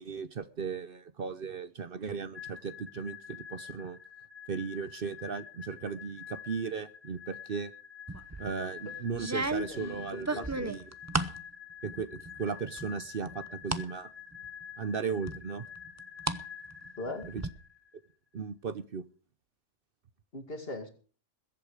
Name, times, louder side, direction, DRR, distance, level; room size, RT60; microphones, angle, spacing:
voice 1, 0.0-4.0 4.5-7.7 8.4-10.9 11.8-14.1 14.8-15.7 17.3-17.4 18.3-19.0, right 5 dB, 55° right, 13 dB, 0.9 m, -36 dB
sound 1, 2.3-17.9, left 8 dB, 25° left, 1.0 m, -47 dB
sound 2, 8.1-8.5 9.1-11.4 11.8-12.4 12.8-13.9 14.3-14.4 15.3-16.4 16.7-17.5, right 2 dB, 15° right, 0.7 m, -34 dB
voice 2, 9.7-10.7 17.0-17.3 20.3-20.9, left 2 dB, 50° left, 4 dB, 2.6 m, -40 dB
21.5 x 8.3 x 4.9 m, 0.40 s
omnidirectional pair, 1.2 m